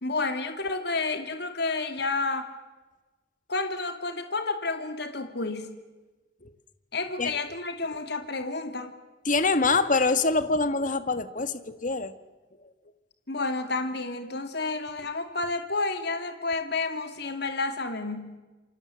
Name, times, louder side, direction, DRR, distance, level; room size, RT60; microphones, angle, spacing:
voice 1, 0.0-2.5 3.5-5.7 6.9-8.9 13.3-18.3, left 3 dB, 60° left, 7 dB, 2.6 m, -30 dB
voice 2, 9.2-12.1, left 3 dB, 40° left, 12 dB, 1.6 m, -25 dB
28.5 x 24.5 x 7.8 m, 1.2 s
head